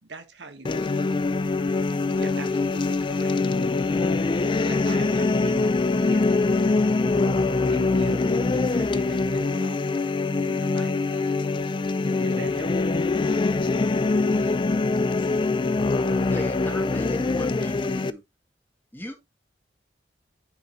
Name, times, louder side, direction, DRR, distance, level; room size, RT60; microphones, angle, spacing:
voice 1, 0.0-1.2 2.1-3.4 4.6-6.5 7.7-9.8 10.4-11.4 12.2-13.0 16.3-17.2, right 2 dB, 75° right, 1.5 m, -42 dB
sound 1, 0.7-18.1, left 3 dB, 25° left, 0.3 m, -23 dB
voice 2, 13.6-13.7, left 1 dB, 60° left, 2.6 m, -52 dB
voice 3, 16.1-18.2 18.9-19.1, left 1 dB, 10° left, 2.0 m, -37 dB
9.7 x 5.3 x 3.1 m
head